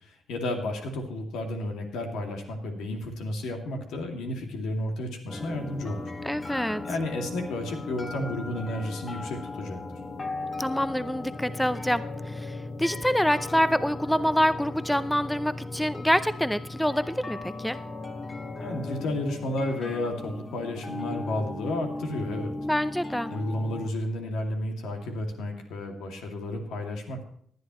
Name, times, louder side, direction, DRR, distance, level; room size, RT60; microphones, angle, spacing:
voice 1, 0.0-6.1 6.8-9.8 18.6-22.5 23.3-27.3, left 1 dB, 85° left, 3 dB, 2.4 m, -32 dB
sound 1, 5.3-23.9, left 2 dB, 30° left, 1.7 m, -37 dB
voice 2, 6.2-6.8 10.6-17.8 22.6-23.3, equal, 5° left, 14 dB, 0.6 m, -26 dB
18.5 x 10.5 x 3.1 m, 0.63 s
cardioid pair, 75°, 0 cm